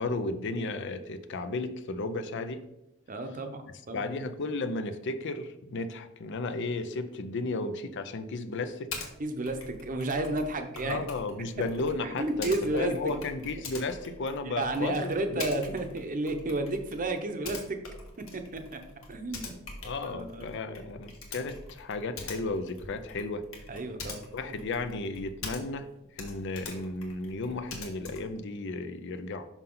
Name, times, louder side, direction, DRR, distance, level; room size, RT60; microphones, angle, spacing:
voice 1, 0.0-2.6 3.9-8.9 10.8-15.8 19.8-23.4 24.3-25.9 26.1-29.5, left 3 dB, 60° left, 10 dB, 0.5 m, -34 dB
voice 2, 3.1-4.1 9.2-11.0 12.0-13.1 14.4-17.8 18.2-18.8 19.1-19.6 20.1-20.5 23.7-24.2, right 2 dB, 40° right, 6 dB, 0.8 m, -32 dB
Typing, 8.9-9.1 9.4-25.9 26.1-28.4, left 3 dB, 80° left, 1.4 m, -44 dB
5.9 x 5.5 x 3.8 m, 0.86 s
head